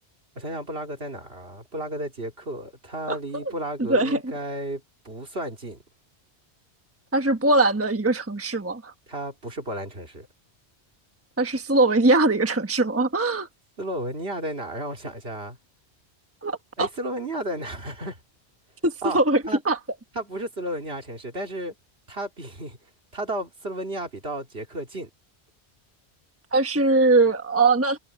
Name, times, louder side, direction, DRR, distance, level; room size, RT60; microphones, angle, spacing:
voice 1, 0.3-5.8 9.1-10.3 13.8-15.6 16.8-18.2 19.0-19.2 19.5-19.6 20.1-21.7 22.1-22.8 23.1-25.1, right 1 dB, 65° right, 3.3 m, -33 dB
voice 2, 3.1-3.4 3.8-4.2 7.1-8.9 11.4-13.5 16.4-16.9 18.8-19.8 26.5-28.0, right 2 dB, 15° right, 1.2 m, -21 dB
omnidirectional pair, 1.1 m